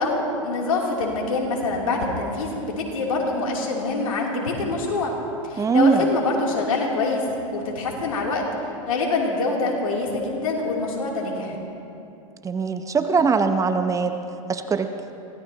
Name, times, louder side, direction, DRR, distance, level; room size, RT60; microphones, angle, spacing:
voice 1, 0.0-5.1 5.4-7.2 7.5-8.4 8.9-11.6, left 3 dB, 80° left, -1 dB, 3.2 m, -25 dB
voice 2, 5.6-6.1 12.4-14.2 14.5-14.9, right 5 dB, 20° right, 8 dB, 0.8 m, -21 dB
24.5 x 17.5 x 2.9 m, 2.7 s
hypercardioid pair, 105°, 17 cm